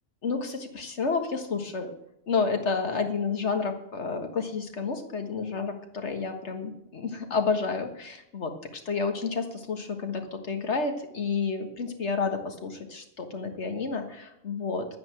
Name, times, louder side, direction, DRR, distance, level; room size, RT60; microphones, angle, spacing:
voice 1, 0.2-1.9 2.3-14.9, left 4 dB, 55° left, 5 dB, 1.8 m, -30 dB
11.0 x 9.5 x 7.8 m, 0.80 s
omnidirectional pair, 1.5 m